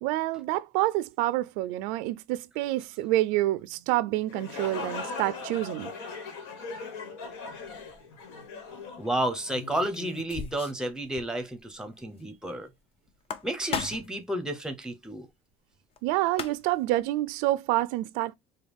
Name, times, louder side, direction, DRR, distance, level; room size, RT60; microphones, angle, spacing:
voice 1, 0.0-5.9 16.0-18.3, right 16 dB, 80° right, 0.4 m, -28 dB
sound 1, 4.1-9.9, left 4 dB, 90° left, 1.3 m, -39 dB
sound 2, 7.7-8.0 9.5-10.9 11.2-11.3 11.6-11.7 13.1-14.2 16.0-16.1 16.3-16.8, left 6 dB, 40° left, 0.7 m, -36 dB
voice 2, 9.0-12.7 13.4-15.3, right 1 dB, 5° right, 0.8 m, -31 dB
4.9 x 2.3 x 3.4 m
supercardioid pair, 110°, 14 cm